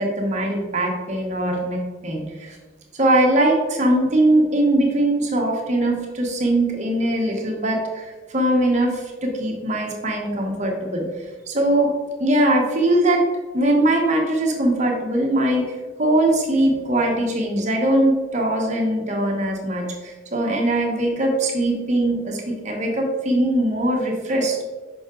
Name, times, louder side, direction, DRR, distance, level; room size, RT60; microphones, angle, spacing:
voice 1, 0.0-2.6 2.9-11.9 12.2-13.2 13.5-24.6, right 1 dB, 40° right, 0 dB, 1.1 m, -21 dB
6.0 x 5.5 x 3.7 m, 1.3 s
head